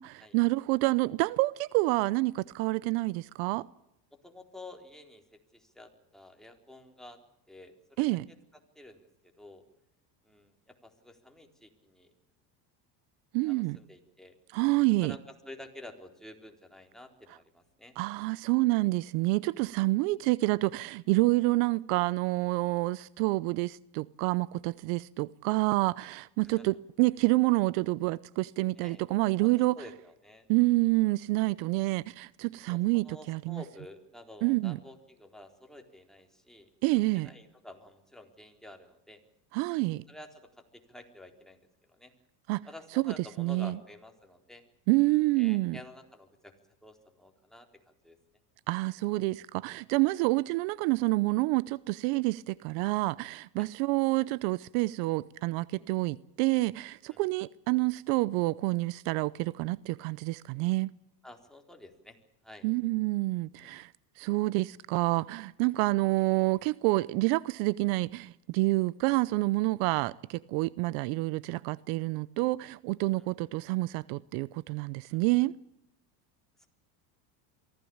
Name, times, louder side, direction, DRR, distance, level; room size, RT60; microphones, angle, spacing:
voice 1, 0.0-3.7 8.0-8.2 13.3-13.8 14.5-15.2 18.0-29.8 30.5-33.6 34.4-34.8 36.8-37.3 39.5-40.0 42.5-42.7 43.0-43.7 44.9-45.8 48.7-60.9 62.6-63.9 64.2-75.5, right 22 dB, 70° right, 0.8 m, -28 dB
voice 2, 4.1-7.2 7.5-8.4 8.7-9.6 10.2-12.1 13.4-14.4 15.0-18.0 26.5-26.6 28.8-29.0 29.4-30.5 32.7-36.7 37.1-39.2 40.1-41.6 41.9-42.1 42.6-44.6 45.4-46.5 46.8-47.7 48.0-48.2 53.6-53.7 57.1-57.2 61.2-62.2 62.4-62.7 63.6-63.7 73.2-73.3 75.1-75.2, left 1 dB, ahead, 4.0 m, -50 dB
23.5 x 16.0 x 8.7 m
supercardioid pair, 110°, 48 cm